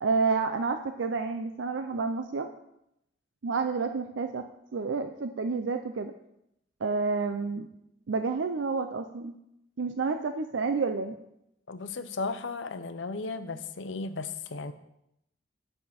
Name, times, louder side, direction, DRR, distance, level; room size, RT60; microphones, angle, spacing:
voice 1, 0.0-2.5 3.4-6.1 6.8-7.7 8.1-9.3 9.8-11.2, right 4 dB, 85° right, 7 dB, 0.5 m, -29 dB
voice 2, 11.7-14.7, left 4 dB, 80° left, 11 dB, 0.7 m, -35 dB
11.0 x 6.6 x 4.2 m, 0.82 s
head